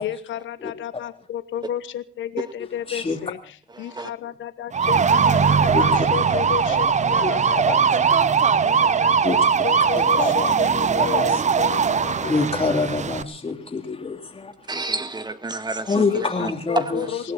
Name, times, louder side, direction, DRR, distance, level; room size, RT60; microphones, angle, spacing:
voice 1, 0.0-8.2 8.6-12.8 16.1-17.3, left 11 dB, 75° left, 1.1 m, -32 dB
voice 2, 2.6-3.2 5.7-6.1 7.2-7.8 9.2-9.4 9.7-11.4 12.2-14.7 15.9-17.3, left 4 dB, 30° left, 3.1 m, -27 dB
voice 3, 3.8-4.1 14.7-16.0 16.4-17.1, right 2 dB, 20° right, 1.9 m, -29 dB
sound 1, 4.7-13.2, right 6 dB, 35° right, 0.9 m, -20 dB
20.5 x 16.5 x 4.2 m
cardioid pair, 90°, 20 cm